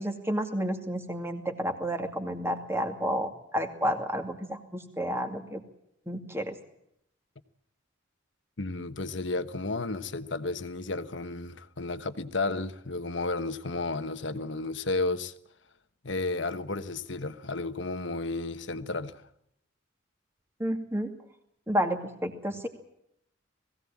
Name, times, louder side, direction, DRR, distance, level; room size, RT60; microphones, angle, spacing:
voice 1, 0.0-5.6 6.1-6.5 20.6-21.1 21.7-22.7, equal, 10° right, 2.4 m, -31 dB
voice 2, 8.6-15.3 16.0-19.2, left 3 dB, 65° left, 1.3 m, -32 dB
20.5 x 16.5 x 8.6 m
head